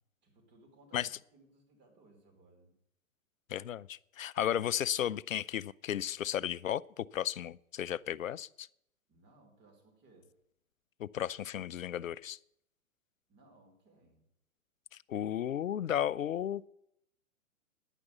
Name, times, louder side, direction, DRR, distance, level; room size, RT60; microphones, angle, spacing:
voice 1, 0.2-2.8 9.1-10.3 13.3-14.3, right 2 dB, 25° right, 4.1 m, -63 dB
voice 2, 3.5-8.7 11.0-12.4 15.1-16.6, left 10 dB, 75° left, 0.5 m, -34 dB
10.0 x 9.6 x 8.1 m
figure-of-eight pair, 110°, 41 cm